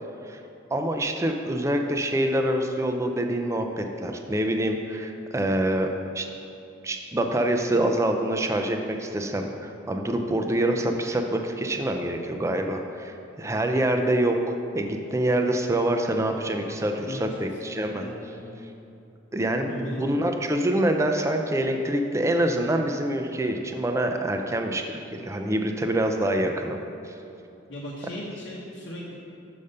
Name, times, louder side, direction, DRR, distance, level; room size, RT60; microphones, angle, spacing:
voice 1, 0.7-5.9 6.1-6.3 6.8-18.0 19.3-26.8 27.0-27.1, right 1 dB, 15° right, 4 dB, 0.4 m, -26 dB
voice 2, 17.0-17.5 17.9-18.5 19.6-20.1 27.7-29.2, left 1 dB, 70° left, -5 dB, 0.9 m, -37 dB
6.8 x 5.1 x 5.4 m, 2.7 s
head